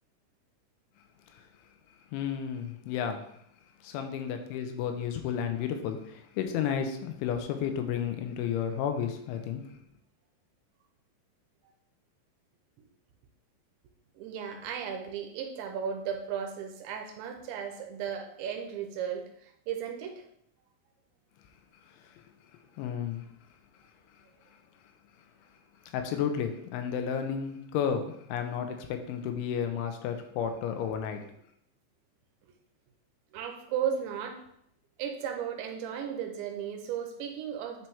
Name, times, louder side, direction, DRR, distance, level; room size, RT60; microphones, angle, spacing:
voice 1, 2.1-3.2 3.8-9.6 22.8-23.3 25.9-31.3, left 8 dB, 85° left, 6 dB, 3.1 m, -32 dB
voice 2, 14.2-20.2 22.8-22.9 33.3-34.4 35.0-37.9, right 8 dB, 85° right, 3 dB, 2.9 m, -35 dB
8.9 x 4.4 x 3.5 m, 0.71 s
omnidirectional pair, 5.4 m